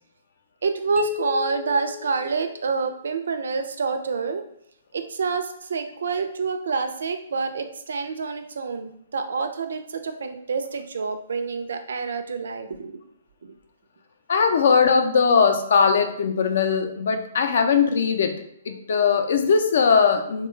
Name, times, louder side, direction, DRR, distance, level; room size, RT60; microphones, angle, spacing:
voice 1, 0.6-4.4 4.9-13.0 13.4-13.5, right 4 dB, 80° right, 7 dB, 0.4 m, -27 dB
sound 1, 1.0-2.9, left 6 dB, 15° left, 0.6 m, -33 dB
voice 2, 14.3-20.5, left 6 dB, 60° left, 7 dB, 0.4 m, -20 dB
3.5 x 2.2 x 3.1 m, 0.71 s
hypercardioid pair, 170°, 0 cm